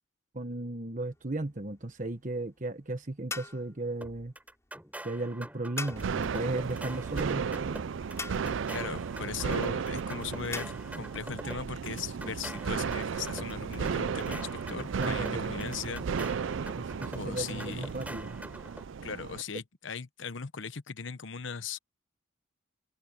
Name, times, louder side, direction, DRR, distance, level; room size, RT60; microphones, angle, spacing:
voice 1, 0.3-4.3 5.0-7.8 14.9-15.7 16.8-18.4, right 2 dB, 40° right, 1.3 m, -35 dB
sound 1, 1.0-10.7, left 3 dB, 15° left, 6.4 m, -45 dB
sound 2, 4.0-18.9, right 1 dB, 10° right, 7.0 m, -45 dB
sound 3, 6.0-19.4, right 6 dB, 75° right, 0.4 m, -34 dB
voice 2, 8.7-16.1 17.1-17.9 19.0-21.8, left 5 dB, 75° left, 0.9 m, -38 dB
head